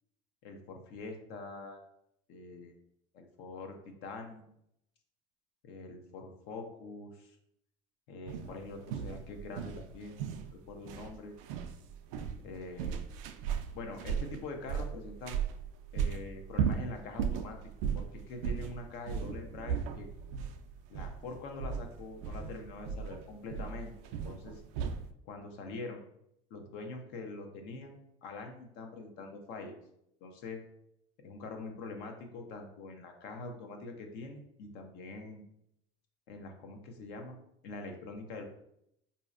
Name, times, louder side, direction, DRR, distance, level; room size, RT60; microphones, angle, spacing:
voice 1, 0.4-1.8 2.3-2.7 3.1-4.5 5.6-7.4 8.1-10.2 10.5-11.3 12.4-13.0 13.7-15.4 15.9-17.6 17.9-20.1 20.9-23.9 24.2-24.6 25.2-26.0 26.5-29.7 30.2-30.6 31.2-35.4 36.3-37.4 37.6-38.4, left 3 dB, 70° left, 3 dB, 0.8 m, -44 dB
sound 1, 8.3-25.1, right 7 dB, 85° right, 0.4 m, -37 dB
4.2 x 2.8 x 2.4 m, 0.75 s
supercardioid pair, 100°, 17 cm